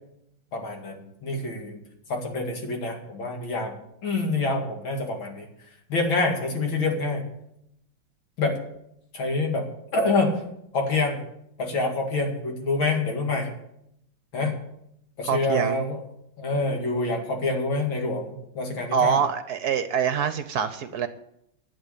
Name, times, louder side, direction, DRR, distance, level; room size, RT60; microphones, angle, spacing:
voice 1, 0.5-1.8 2.1-3.7 4.0-5.5 5.9-7.2 8.4-8.6 9.1-9.7 9.9-10.3 10.7-11.2 11.6-13.5 14.3-14.6 15.2-16.0 16.4-19.2, left 3 dB, 80° left, 2 dB, 3.1 m, -26 dB
voice 2, 15.2-15.8 18.9-21.1, right 7 dB, 65° right, 11 dB, 1.1 m, -25 dB
11.5 x 8.3 x 8.2 m, 0.77 s
omnidirectional pair, 2.1 m